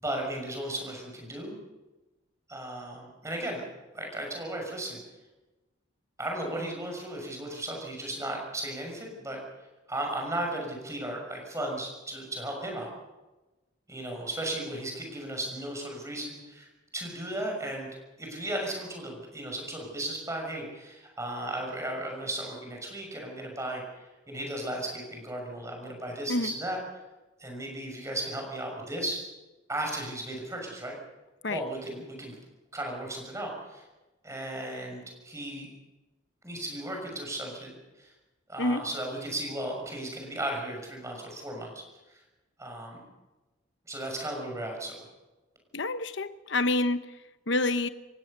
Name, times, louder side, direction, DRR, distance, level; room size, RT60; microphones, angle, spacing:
voice 1, 0.0-1.6 2.5-3.6 3.9-5.0 6.2-9.4 9.9-12.9 13.9-16.7 16.9-17.9 18.2-26.8 27.4-29.2 29.7-31.0 31.5-32.3 32.7-33.8 34.2-35.7 36.4-38.1 38.5-41.8 42.1-42.2 42.6-43.0 43.9-44.9, right 1 dB, 15° right, 1 dB, 6.3 m, -35 dB
voice 2, 45.7-47.0 47.5-47.9, left 2 dB, 60° left, 11 dB, 1.0 m, -27 dB
27.5 x 16.5 x 6.8 m, 1.1 s
head